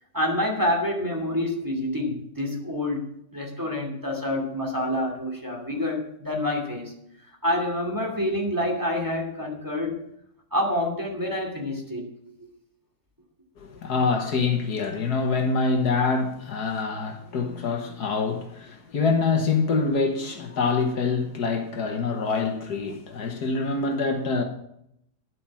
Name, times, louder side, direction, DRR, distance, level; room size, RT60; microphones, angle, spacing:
voice 1, 0.1-6.9 7.3-10.0 10.5-12.0 12.4-12.5, left 1 dB, 10° right, 2.7 m, -27 dB
voice 2, 13.6-24.4, left 4 dB, 65° left, 1.8 m, -25 dB
10.5 x 7.9 x 7.5 m
omnidirectional pair, 1.8 m